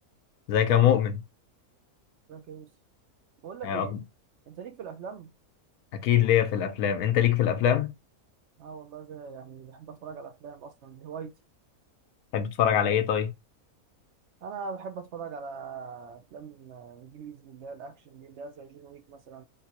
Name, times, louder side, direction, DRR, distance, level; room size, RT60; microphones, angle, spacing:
voice 1, 0.5-1.2 3.6-4.0 5.9-7.9 12.3-13.3, left 10 dB, 75° left, 1.1 m, -23 dB
voice 2, 2.3-2.7 3.4-4.0 4.5-5.3 8.6-11.3 14.4-19.4, right 5 dB, 70° right, 0.7 m, -41 dB
3.7 x 2.7 x 2.8 m
omnidirectional pair, 1.6 m